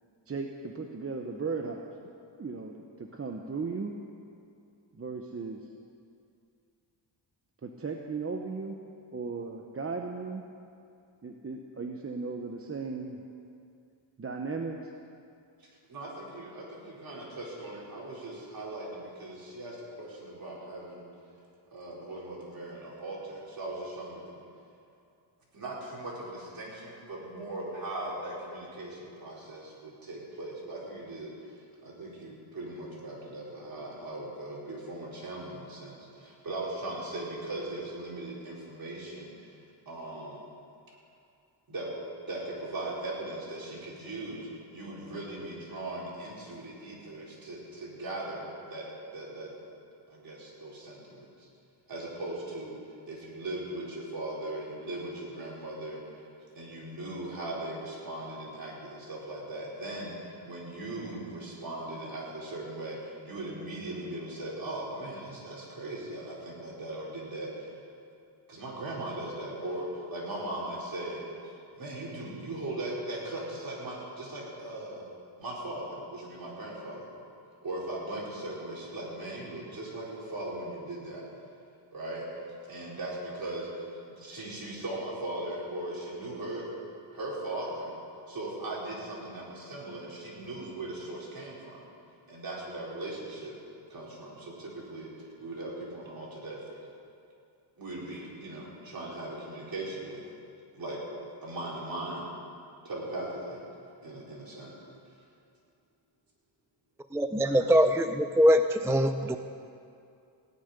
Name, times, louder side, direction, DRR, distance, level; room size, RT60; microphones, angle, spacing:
voice 1, 0.3-1.9 2.4-3.9 5.0-5.6 7.6-8.8 9.1-10.4 11.2-13.2 14.2-14.9, right 4 dB, 30° right, 2 dB, 0.8 m, -36 dB
voice 2, 15.9-21.0 21.7-24.4 25.5-31.3 31.8-39.6 39.9-40.4 41.7-41.9 42.3-48.9 49.1-49.5 50.1-51.5 51.9-52.8 53.1-56.2 56.6-67.7 68.5-75.0 75.4-77.1 77.6-81.2 81.9-86.7 87.1-87.9 88.3-91.8 92.3-93.6 93.9-96.8 97.8-100.2 100.7-101.0 101.4-102.3 102.8-103.6 104.0-104.7 107.4-107.5, right 1 dB, 45° right, -5 dB, 4.4 m, -39 dB
voice 3, 107.1-109.4, equal, 5° right, 8 dB, 0.3 m, -23 dB
17.5 x 6.7 x 9.7 m, 2.5 s
wide cardioid pair, 115°, 48 cm